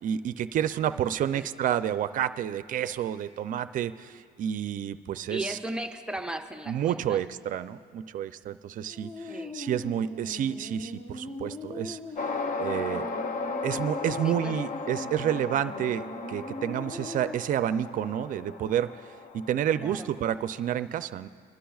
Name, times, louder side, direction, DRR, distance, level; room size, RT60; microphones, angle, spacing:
voice 1, 0.0-5.6 6.7-12.0 12.6-13.1 13.6-21.3, right 10 dB, 50° right, 12 dB, 0.4 m, -30 dB
voice 2, 5.3-7.2 9.3-9.6 14.2-14.5 19.7-20.1, right 1 dB, 5° right, 4 dB, 0.6 m, -36 dB
sound 1, 8.8-17.4, left 1 dB, 30° left, 1.2 m, -41 dB
sound 2, 12.2-20.7, left 4 dB, 50° left, 0.6 m, -36 dB
24.0 x 11.5 x 2.4 m, 2.2 s
cardioid pair, 110°, 17 cm